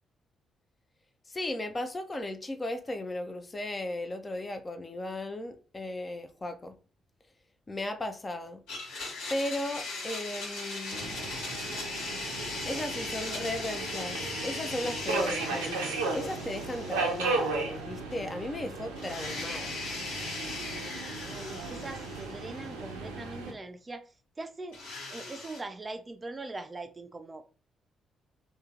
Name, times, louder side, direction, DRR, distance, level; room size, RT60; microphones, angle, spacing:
voice 1, 1.3-6.7 7.7-8.6 9.3-11.2 12.7-19.8, left 1 dB, 25° left, 0.6 m, -36 dB
Domestic sounds home sounds, 8.7-17.8 18.1-18.2 19.0-22.9 24.7-25.6, left 3 dB, 70° left, 1.2 m, -39 dB
Subway metro underground, 10.9-23.5, right 3 dB, 75° right, 0.6 m, -36 dB
voice 2, 21.2-24.0 24.4-24.8 25.1-27.4, right 2 dB, 25° right, 0.5 m, -41 dB
2.8 x 2.8 x 3.6 m
figure-of-eight pair, 40°, 0 cm